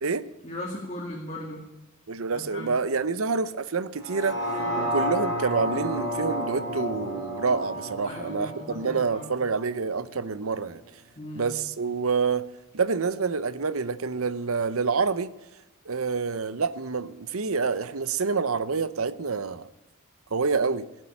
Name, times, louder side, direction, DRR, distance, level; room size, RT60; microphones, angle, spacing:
voice 1, 0.4-1.7 2.3-2.7 4.6-4.9 8.0-9.3 11.2-11.5, left 1 dB, 30° left, 2.3 m, -38 dB
voice 2, 2.1-10.8 11.3-12.5 12.7-15.3 15.9-19.7 20.3-20.9, right 4 dB, 85° right, 0.8 m, -27 dB
sound 1, 4.0-10.1 10.5-10.6, equal, 15° right, 6.4 m, -31 dB
17.5 x 7.6 x 8.8 m
head